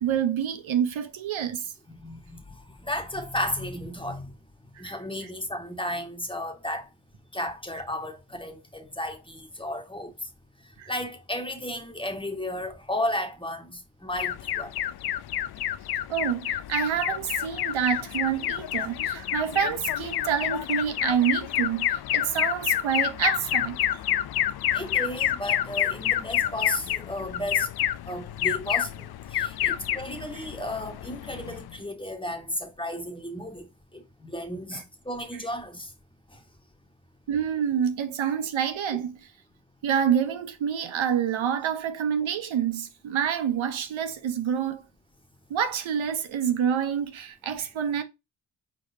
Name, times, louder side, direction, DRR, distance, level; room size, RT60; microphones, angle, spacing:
voice 1, 0.0-1.7 4.8-5.0 10.8-10.9 16.1-23.8 24.7-24.8 29.6-29.8 34.7-34.8 37.3-39.2 39.8-44.8 45.5-48.0, right 8 dB, 70° right, 1.0 m, -27 dB
voice 2, 1.9-4.3 4.8-6.9 7.3-10.1 10.9-14.7 24.7-27.7 28.1-35.9 36.3-36.4, left 1 dB, 10° left, 1.5 m, -34 dB
Alarm, 14.2-31.8, left 11 dB, 50° left, 0.5 m, -29 dB
4.6 x 4.2 x 2.7 m
cardioid pair, 70°, 50 cm